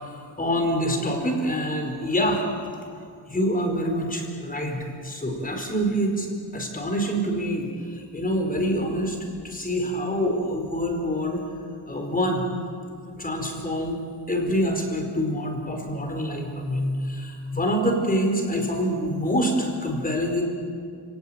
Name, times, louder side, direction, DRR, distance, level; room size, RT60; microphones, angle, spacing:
voice 1, 0.2-2.8 3.3-6.3 6.5-9.2 9.4-11.4 11.9-12.5 13.2-14.0 14.3-20.4, equal, 20° left, 3 dB, 4.7 m, -26 dB
30.0 x 18.5 x 8.9 m, 2.3 s
wide cardioid pair, 150°, 43 cm